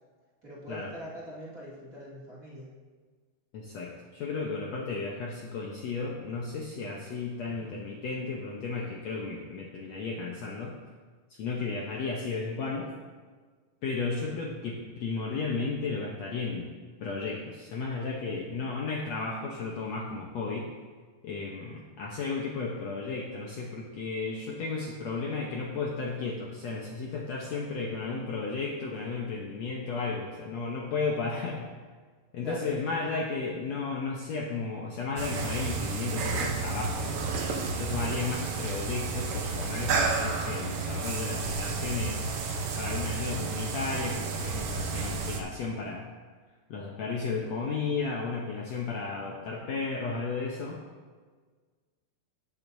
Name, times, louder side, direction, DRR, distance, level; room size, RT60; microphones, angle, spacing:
voice 1, 0.4-2.7 32.4-32.7, equal, 25° right, -8 dB, 2.7 m, -43 dB
voice 2, 3.5-10.7 11.4-12.9 13.8-16.7 17.0-20.7 21.2-31.7 32.3-37.2 37.7-46.0 46.7-50.8, left 4 dB, 65° left, -2 dB, 1.9 m, -34 dB
sound 1, 35.2-45.4, right 4 dB, 70° right, 1.3 m, -31 dB
18.5 x 7.8 x 2.7 m, 1.5 s
omnidirectional pair, 3.9 m